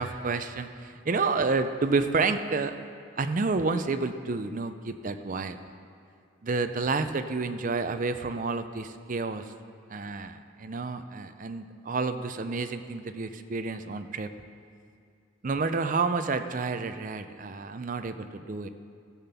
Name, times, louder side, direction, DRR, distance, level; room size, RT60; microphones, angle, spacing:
voice 1, 0.0-2.7 3.2-5.6 6.4-9.4 9.9-14.3 15.4-18.7, right 4 dB, 40° right, 9 dB, 0.5 m, -29 dB
14.0 x 5.9 x 6.9 m, 2.3 s
head